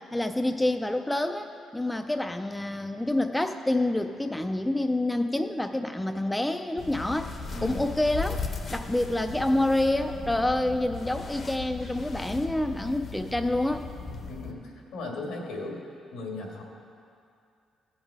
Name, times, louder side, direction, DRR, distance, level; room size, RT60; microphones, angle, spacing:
voice 1, 0.0-1.5 1.7-7.3 7.6-8.4 8.7-13.8, left 1 dB, 10° left, 6 dB, 0.4 m, -27 dB
sound 1, 6.8-14.5, left 4 dB, 45° left, 0.9 m, -37 dB
voice 2, 7.5-7.8 14.1-15.8 16.1-16.6, left 2 dB, 85° left, -1 dB, 2.0 m, -37 dB
16.0 x 5.5 x 4.9 m, 2.5 s
cardioid pair, 90°, 0 cm